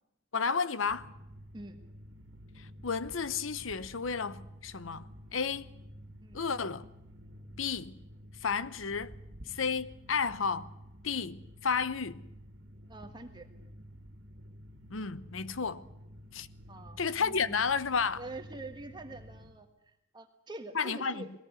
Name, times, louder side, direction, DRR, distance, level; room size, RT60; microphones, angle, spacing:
voice 1, 0.3-1.1 2.8-5.0 5.3-5.7 6.3-6.8 7.6-7.9 8.4-9.1 9.5-10.7 11.0-12.2 14.9-15.8 16.3-16.5 17.0-18.2 20.7-21.3, left 5 dB, 90° left, 0.9 m, -32 dB
sound 1, 0.9-19.5, equal, 65° right, 2.2 m, -51 dB
voice 2, 12.9-13.5 16.7-17.6 18.2-21.3, right 2 dB, 20° right, 1.5 m, -45 dB
21.0 x 18.5 x 9.6 m
head